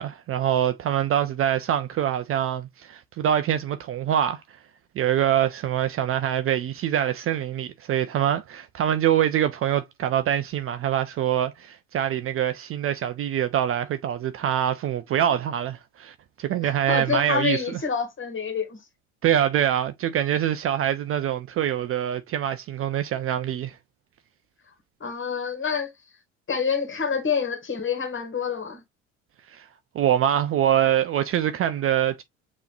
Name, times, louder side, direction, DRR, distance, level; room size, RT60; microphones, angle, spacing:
voice 1, 0.0-4.4 5.0-17.6 19.2-23.8 29.5-29.6 29.9-32.2, right 10 dB, 35° right, 0.5 m, -24 dB
voice 2, 16.6-18.8 25.0-25.9 26.5-28.8, left 6 dB, 30° left, 1.9 m, -27 dB
6.8 x 3.1 x 2.4 m
hypercardioid pair, 65°, 39 cm